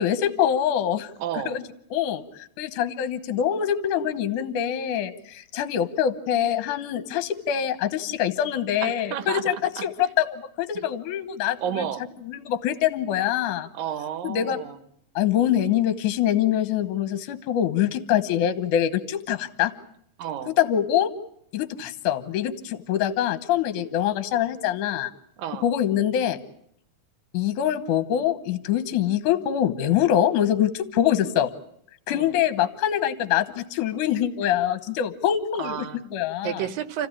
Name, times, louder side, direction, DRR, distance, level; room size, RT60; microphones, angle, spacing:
voice 1, 0.0-1.1 1.5-1.6 1.9-2.2 2.6-9.5 9.8-11.6 12.3-13.7 14.2-14.6 15.2-19.7 20.5-21.1 21.5-25.1 25.6-26.4 27.3-31.5 32.1-35.7 36.1-36.6, left 10 dB, 65° left, 13 dB, 2.4 m, -24 dB
voice 2, 1.2-1.6 8.8-9.8 10.7-10.8 11.6-12.0 13.7-14.8 20.2-20.5 25.4-25.7 32.1-32.4 35.6-36.0 36.4-37.1, right 9 dB, 70° right, 13 dB, 2.7 m, -31 dB
29.0 x 15.5 x 10.0 m, 0.71 s
omnidirectional pair, 4.3 m